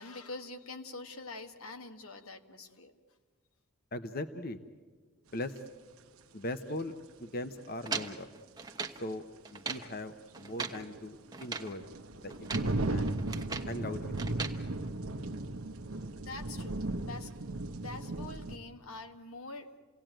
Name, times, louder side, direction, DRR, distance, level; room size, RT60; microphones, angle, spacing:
voice 1, 0.0-2.9 15.7-17.3 17.8-19.8, left 3 dB, 85° left, 6 dB, 1.7 m, -45 dB
voice 2, 3.9-4.6 5.3-5.6 6.3-6.9 7.2-8.3 9.0-9.2 9.5-11.9 12.2-13.1 13.6-14.5, left 1 dB, 45° left, 9 dB, 0.9 m, -40 dB
sound 1, 5.6-5.7 8.1-8.2 8.7-8.8 10.3-18.6, right 2 dB, 85° right, 1.0 m, -36 dB
sound 2, 7.9-9.0 9.4-9.9 10.3-10.8 11.3-11.7 12.3-12.7 13.1-13.8 14.2-14.6, right 4 dB, 20° right, 1.0 m, -39 dB
29.0 x 18.0 x 9.0 m, 1.5 s
head